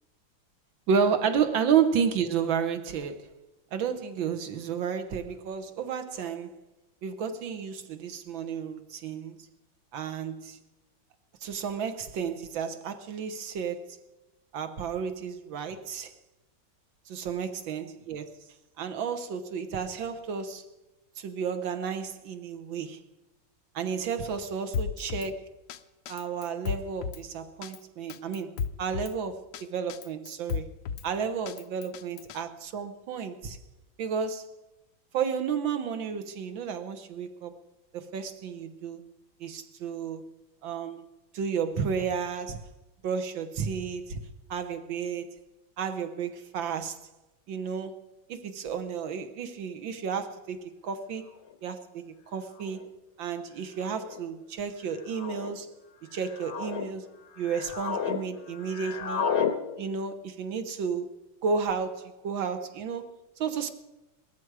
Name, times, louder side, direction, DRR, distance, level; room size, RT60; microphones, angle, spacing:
voice 1, 0.9-3.3 3.7-6.5 7.0-9.4 9.9-10.6 11.4-14.0 14.5-16.1 17.1-18.3 18.8-20.7 21.2-23.0 23.8-25.5 26.1-30.7 31.0-33.6 34.0-34.5 35.1-37.6 37.9-39.1 39.4-40.2 40.6-41.0 41.3-42.6 43.0-44.2 44.5-45.3 45.8-47.1 47.5-48.0 48.3-51.3 51.6-52.9 53.2-55.7 56.0-57.1 57.4-59.3 59.8-61.1 61.4-63.7, right 6 dB, 75° right, 1.8 m, -32 dB
Drum kit, 24.7-25.3 25.7-25.8 26.1-27.2 27.6-27.8 28.1-29.1 29.5-29.6 29.9-31.1 31.5-32.4, left 6 dB, 70° left, 1.1 m, -34 dB
sound 1, 51.5-51.6 52.6-52.9 53.8-54.2 55.1-55.5 56.1-56.9 57.3-58.2 58.5-59.6, left 7 dB, 85° left, 2.1 m, -32 dB
19.0 x 14.0 x 4.8 m
omnidirectional pair, 2.2 m